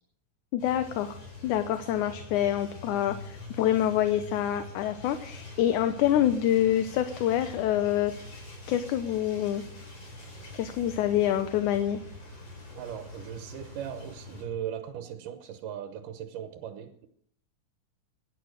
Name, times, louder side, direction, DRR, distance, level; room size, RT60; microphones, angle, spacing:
voice 1, 0.5-1.2 1.4-8.1 8.7-9.6 10.5-12.0, left 11 dB, 75° left, 2.3 m, -26 dB
sound 1, 0.6-14.4, left 2 dB, 50° left, 5.7 m, -45 dB
voice 2, 12.8-17.1, right 9 dB, 85° right, 2.7 m, -38 dB
16.5 x 10.5 x 6.5 m
omnidirectional pair, 3.7 m